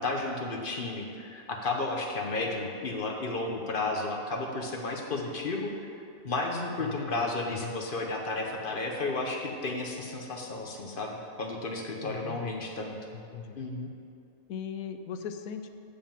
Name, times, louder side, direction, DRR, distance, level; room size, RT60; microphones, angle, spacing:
voice 1, 0.0-5.9 6.2-13.0 13.6-13.9, left 2 dB, 45° left, 1 dB, 0.9 m, -33 dB
voice 2, 6.8-7.7 12.0-12.6 13.1-13.6 14.5-15.7, left 7 dB, 90° left, 8 dB, 1.0 m, -39 dB
7.4 x 5.1 x 7.2 m, 2.5 s
omnidirectional pair, 1.4 m